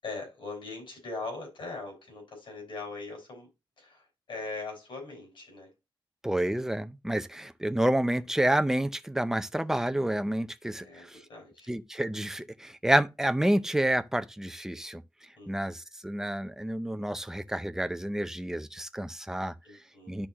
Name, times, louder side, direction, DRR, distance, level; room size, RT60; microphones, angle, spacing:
voice 1, 0.0-3.5 3.8-5.7 10.7-11.7 15.4-15.7 19.6-20.2, left 3 dB, 85° left, 5.7 m, -41 dB
voice 2, 6.2-11.2 11.7-15.0 15.5-19.5 20.1-20.3, right 1 dB, 5° right, 0.5 m, -29 dB
12.5 x 4.3 x 2.9 m
wide cardioid pair, 155°, 8 cm